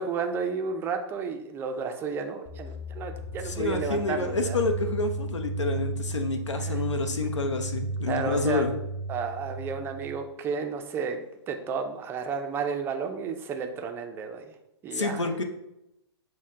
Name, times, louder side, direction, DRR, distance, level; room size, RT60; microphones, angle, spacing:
voice 1, 0.0-4.6 6.6-6.8 8.0-8.7 9.1-11.2 11.5-14.5 14.8-15.4, right 5 dB, 15° right, 5 dB, 0.4 m, -32 dB
sound 1, 2.5-10.2, right 2 dB, 40° left, 1.6 m, -34 dB
voice 2, 3.4-8.7 14.9-15.4, left 3 dB, 85° left, 6 dB, 0.7 m, -28 dB
6.3 x 2.1 x 3.6 m, 0.84 s
hypercardioid pair, 130°, 15 cm